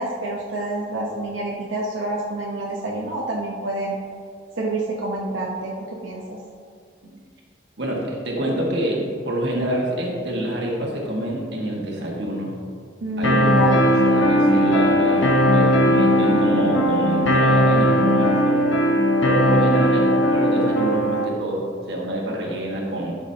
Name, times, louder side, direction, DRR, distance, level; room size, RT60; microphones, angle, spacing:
voice 1, 0.0-4.0 4.5-6.4 13.0-13.8, right 1 dB, 90° right, -3 dB, 0.9 m, -27 dB
voice 2, 7.8-12.6 13.2-13.7 14.0-18.5 19.2-23.2, right 1 dB, 60° right, -2 dB, 1.6 m, -27 dB
sound 1, 13.2-21.2, equal, 75° left, 1.1 m, -18 dB
12.0 x 6.2 x 2.8 m, 2.2 s
head